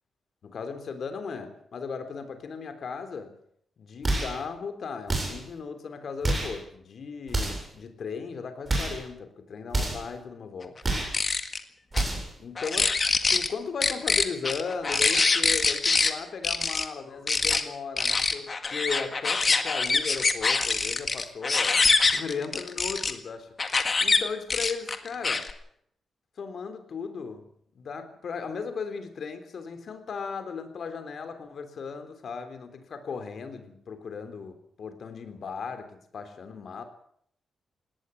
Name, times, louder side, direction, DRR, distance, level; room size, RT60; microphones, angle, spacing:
voice 1, 0.4-3.4 3.8-10.8 12.4-12.9 13.3-23.5 24.0-25.5 26.4-36.8, left 5 dB, 50° left, 8 dB, 3.7 m, -37 dB
sound 1, 4.0-4.4 5.1-5.5 6.2-6.6 7.3-7.7 8.7-9.0 9.7-10.1 10.8-11.2 11.9-12.3, right 2 dB, 20° right, 7.8 m, -28 dB
sound 2, 10.9-11.6 11.9-12.0 12.6-13.5 13.8-16.1 16.4-16.8 17.3-17.6 18.0-23.1 23.6-24.2 24.5-25.5, left 4 dB, 30° left, 1.8 m, -24 dB
19.0 x 18.0 x 8.6 m, 0.67 s
wide cardioid pair, 165°, 0 cm